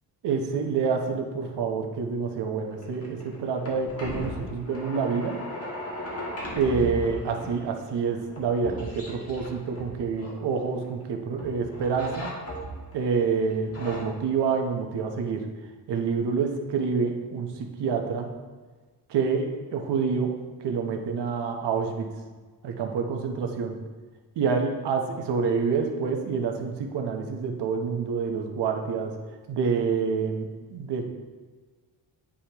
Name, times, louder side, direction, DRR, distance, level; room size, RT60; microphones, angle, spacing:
voice 1, 0.2-5.4 6.5-12.3 12.9-15.5 15.9-18.3 19.1-20.3 20.6-22.1 22.6-23.8 24.4-29.2 29.5-31.0, right 5 dB, 75° right, 3 dB, 1.0 m, -27 dB
sound 1, 2.6-11.0 11.4-13.0 13.5-14.0, equal, 35° left, 1.4 m, -37 dB
9.8 x 5.1 x 3.0 m, 1.4 s
wide cardioid pair, 155°, 42 cm